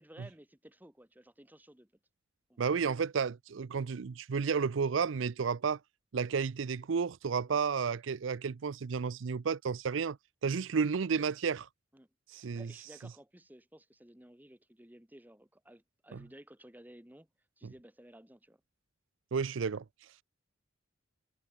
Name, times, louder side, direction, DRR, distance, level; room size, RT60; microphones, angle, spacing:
voice 1, 0.0-1.9 2.5-2.7 11.9-17.3 17.6-18.6, right 1 dB, 10° right, 1.6 m, -56 dB
voice 2, 2.6-5.8 6.1-10.2 10.4-11.7 12.3-12.7 17.6-17.7 19.3-19.8, right 5 dB, 75° right, 0.5 m, -32 dB
head